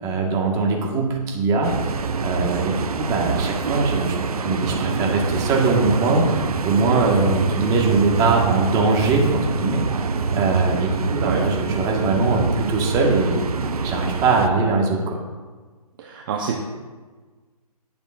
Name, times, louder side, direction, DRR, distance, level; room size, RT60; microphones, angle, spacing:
voice 1, 0.0-13.4 13.8-15.2, right 3 dB, 15° right, -1 dB, 1.6 m, -22 dB
sound 1, 1.6-14.5, right 5 dB, 70° right, 0.8 m, -25 dB
voice 2, 16.0-16.7, right 5 dB, 35° right, 0 dB, 1.0 m, -27 dB
18.5 x 7.0 x 2.6 m, 1.4 s
figure-of-eight pair, 145°, 20 cm